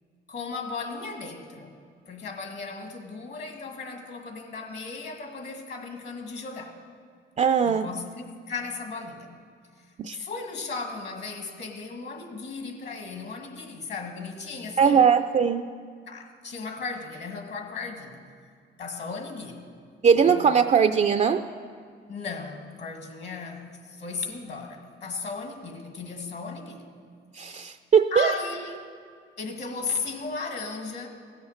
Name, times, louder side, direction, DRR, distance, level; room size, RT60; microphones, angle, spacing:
voice 1, 0.3-1.8 2.1-6.7 7.6-9.4 9.8-9.9 10.1-15.1 16.1-18.2 18.8-19.7 20.2-20.7 22.1-26.8 28.1-28.8 29.4-31.1, left 4 dB, 60° left, 4 dB, 1.8 m, -36 dB
voice 2, 7.4-7.9 10.0-10.2 14.8-15.6 20.0-21.4 27.3-28.3, right 7 dB, 35° right, 8 dB, 0.4 m, -20 dB
16.0 x 7.2 x 6.5 m, 2.2 s
cardioid pair, 90°, 20 cm